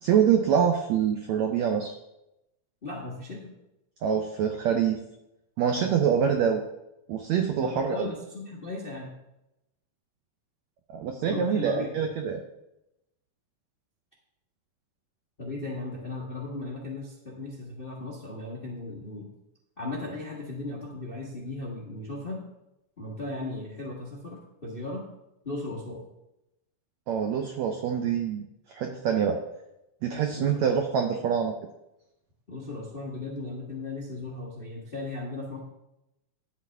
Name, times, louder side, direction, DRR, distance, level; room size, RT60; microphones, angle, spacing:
voice 1, 0.0-1.9 4.0-5.0 5.6-6.6 7.1-8.1 10.9-12.4 27.1-28.4 28.7-29.4 30.0-31.5, right 8 dB, 80° right, 4 dB, 1.6 m, -25 dB
voice 2, 2.8-3.5 7.6-9.1 11.3-12.1 15.4-19.3 19.8-22.4 23.0-25.0 25.4-26.0 30.3-30.6 32.5-35.6, left 2 dB, 35° left, -3 dB, 0.8 m, -36 dB
11.5 x 8.5 x 3.6 m, 0.88 s
omnidirectional pair, 4.1 m